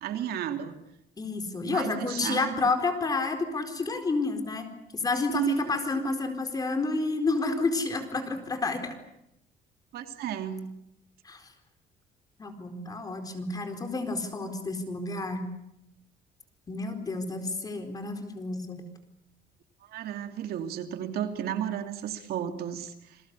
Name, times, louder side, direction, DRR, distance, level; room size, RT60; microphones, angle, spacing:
voice 1, 0.0-0.7 1.6-2.7 5.3-5.7 6.0-6.1 9.9-10.7 19.8-23.2, right 9 dB, 65° right, 7 dB, 2.7 m, -33 dB
voice 2, 1.2-4.7 4.9-9.0 11.2-11.5 12.4-15.5 16.7-18.9, left 3 dB, 20° left, 7 dB, 4.3 m, -30 dB
29.0 x 21.5 x 8.4 m, 0.80 s
cardioid pair, 155°, 17 cm